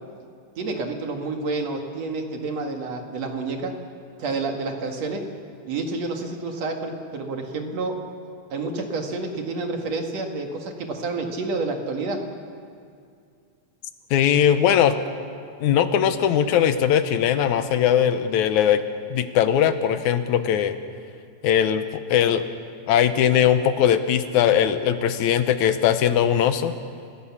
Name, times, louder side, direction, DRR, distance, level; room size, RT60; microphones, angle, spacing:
voice 1, 0.6-3.7 4.2-5.2 5.7-7.9 8.5-12.2, right 3 dB, 65° right, 3 dB, 3.0 m, -29 dB
voice 2, 14.1-14.9 15.6-18.8 19.1-20.8 21.4-22.4 22.9-26.7, left 9 dB, 85° left, 10 dB, 2.4 m, -20 dB
29.5 x 16.0 x 7.3 m, 2.3 s
omnidirectional pair, 3.3 m